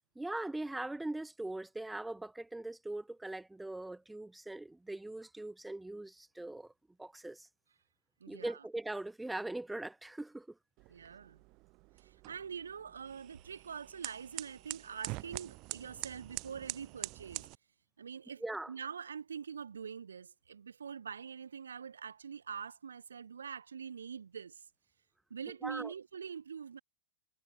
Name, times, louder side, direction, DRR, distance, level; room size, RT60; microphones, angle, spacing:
voice 1, 0.2-6.7 7.0-7.5 8.3-10.5 18.4-18.7 25.6-25.9, right 2 dB, 5° right, 1.7 m, -41 dB
voice 2, 8.2-8.6 10.9-11.4 12.0-17.5 18.0-18.4 18.7-24.6 25.3-26.8, right 6 dB, 70° right, 1.6 m, -44 dB
sound 1, 10.8-17.5, right 24 dB, 40° right, 2.7 m, -45 dB
figure-of-eight pair, 90°, 0 cm